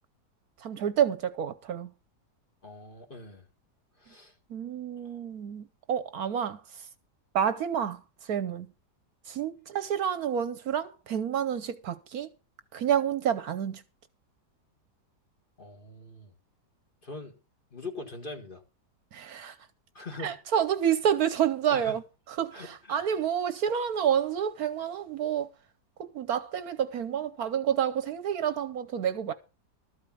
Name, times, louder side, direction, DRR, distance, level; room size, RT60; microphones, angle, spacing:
voice 1, 0.6-1.9 4.5-6.9 7.3-8.0 8.3-8.7 9.3-12.3 12.7-13.8 19.1-19.6 20.2-22.0 22.3-25.5 26.0-29.3, right 9 dB, 65° right, 1.2 m, -29 dB
voice 2, 2.6-3.5 4.0-4.3 15.6-16.3 17.0-17.4 17.7-18.6 19.9-20.4 21.7-21.9 22.5-23.0, left 3 dB, 30° left, 1.9 m, -42 dB
13.0 x 5.1 x 8.4 m
omnidirectional pair, 1.8 m